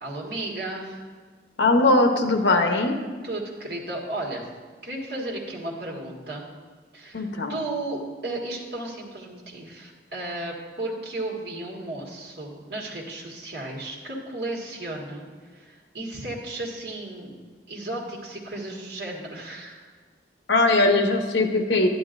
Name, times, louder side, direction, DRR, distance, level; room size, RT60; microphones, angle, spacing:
voice 1, 0.0-1.0 3.2-4.4 4.8-6.5 6.9-17.4 17.7-19.9, right 2 dB, 60° right, -2 dB, 1.7 m, -34 dB
voice 2, 1.6-3.0 7.1-7.6 20.5-21.9, left 2 dB, 80° left, 5 dB, 0.9 m, -20 dB
12.0 x 10.0 x 2.6 m, 1.5 s
head